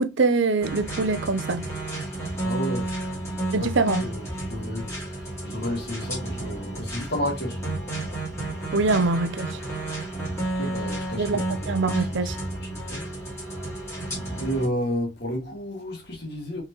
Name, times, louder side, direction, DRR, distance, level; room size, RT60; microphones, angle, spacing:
voice 1, 0.0-1.6 3.5-4.0 8.7-9.6 11.2-12.4 14.0-14.1, right 3 dB, 65° right, 0.6 m, -24 dB
sound 1, 0.6-14.7, right 2 dB, 15° left, 2.3 m, -32 dB
voice 2, 2.4-3.0 3.5-7.7 8.5-8.6 10.5-13.1 14.4-16.6, equal, 50° left, 1.9 m, -32 dB
4.4 x 3.9 x 3.0 m
head